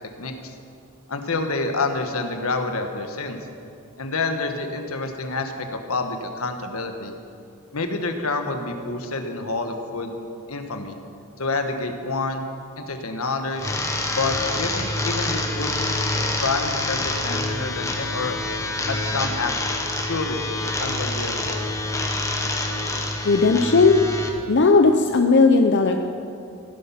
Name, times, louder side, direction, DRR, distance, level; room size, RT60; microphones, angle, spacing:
voice 1, 0.2-0.5 1.1-3.4 4.0-7.1 7.7-10.1 10.5-11.0 11.4-12.5 12.8-13.7 14.1-15.8 16.4-18.4 18.9-19.7 20.0-20.4 20.8-21.7, left 3 dB, 85° left, 5 dB, 1.4 m, -28 dB
sound 1, 13.6-24.3, left 2 dB, 15° left, 1.3 m, -26 dB
voice 2, 23.2-24.0 24.5-26.0, left 3 dB, 55° left, 5 dB, 0.7 m, -16 dB
16.0 x 11.5 x 5.8 m, 2.6 s
head